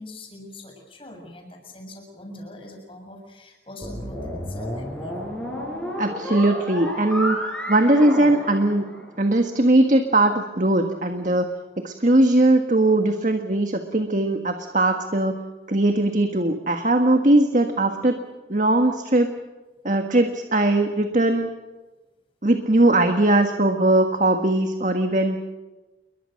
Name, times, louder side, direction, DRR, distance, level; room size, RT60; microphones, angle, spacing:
voice 1, 0.0-5.2, left 1 dB, 30° left, 3 dB, 6.8 m, -42 dB
sound 1, 3.8-9.3, equal, 5° left, 7.7 m, -31 dB
voice 2, 6.0-7.4 7.7-8.8 9.2-11.5 11.8-15.4 15.7-18.2 18.5-19.3 19.8-21.5 22.4-25.4, right 1 dB, 45° right, 6 dB, 1.7 m, -20 dB
29.5 x 22.5 x 6.6 m, 1.2 s
head